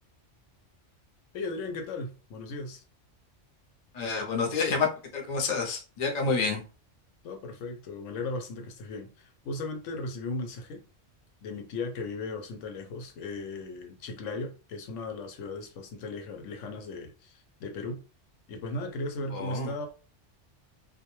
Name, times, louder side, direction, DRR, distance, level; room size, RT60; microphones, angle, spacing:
voice 1, 1.3-2.8 7.2-10.8 11.4-18.0 18.5-19.9, left 2 dB, 85° left, 0.9 m, -37 dB
voice 2, 3.9-6.6 19.3-19.7, left 4 dB, 45° left, 0.6 m, -29 dB
2.2 x 2.1 x 2.9 m
omnidirectional pair, 1.2 m